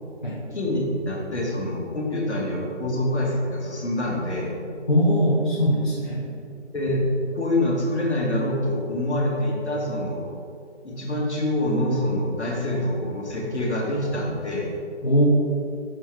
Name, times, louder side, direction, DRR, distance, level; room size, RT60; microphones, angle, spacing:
voice 1, 0.5-4.5 6.7-7.0 7.3-10.3 10.8-14.7, left 1 dB, 65° left, -1 dB, 1.5 m, -26 dB
voice 2, 4.9-6.3 12.8-12.9 15.0-15.2, equal, 45° left, -7 dB, 0.9 m, -21 dB
6.2 x 4.2 x 4.6 m, 2.5 s
figure-of-eight pair, 180°, 36 cm